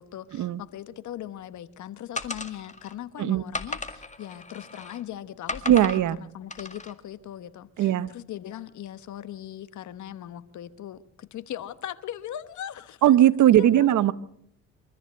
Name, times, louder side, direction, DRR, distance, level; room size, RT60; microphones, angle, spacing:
voice 1, 0.0-13.1 13.5-14.1, left 11 dB, 70° left, 1.2 m, -39 dB
sound 1, 2.2-2.9 3.5-5.0 5.5-6.0 6.5-6.9, left 3 dB, 25° left, 2.0 m, -35 dB
voice 2, 5.7-6.2 7.8-8.1 13.0-14.1, right 12 dB, 75° right, 1.0 m, -19 dB
24.5 x 14.0 x 7.7 m
cardioid pair, 90°, 30 cm